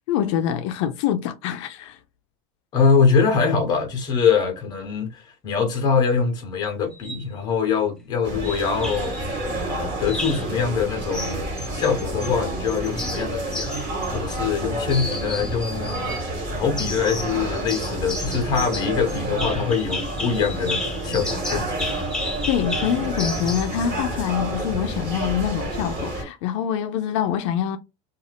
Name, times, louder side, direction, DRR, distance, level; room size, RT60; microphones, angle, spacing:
voice 1, 0.1-2.0 22.5-27.8, left 9 dB, 70° left, 0.4 m, -25 dB
voice 2, 2.7-9.1 9.6-11.4 11.7-13.8 14.1-16.1 16.5-21.9, left 6 dB, 25° left, 0.8 m, -23 dB
sound 1, 6.9-7.3 8.4-9.2 10.1-10.5 11.1-12.3 12.7-14.6 14.9-16.2 16.8-17.4 17.7-23.8, left 2 dB, 5° left, 0.5 m, -33 dB
sound 2, 8.2-26.2, right 1 dB, 35° right, 1.5 m, -29 dB
2.5 x 2.3 x 3.3 m
supercardioid pair, 165°, 16 cm